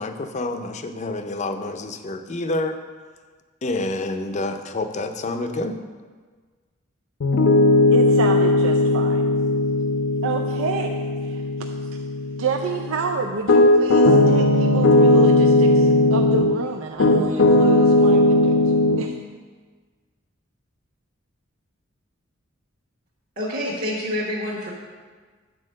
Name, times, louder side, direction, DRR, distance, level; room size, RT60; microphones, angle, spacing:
voice 1, 0.0-2.8 3.6-5.8, left 2 dB, 35° left, 7 dB, 0.5 m, -28 dB
Piano, 7.2-16.6 17.0-19.0, left 2 dB, 75° left, 0.7 m, -17 dB
voice 2, 7.9-9.3 10.2-11.4 11.9-12.0 12.4-18.6 19.0-19.1, right 4 dB, 75° right, 3 dB, 0.5 m, -29 dB
voice 3, 23.4-24.7, left 1 dB, 45° right, -7 dB, 1.4 m, -27 dB
8.5 x 4.5 x 6.4 m, 1.5 s
head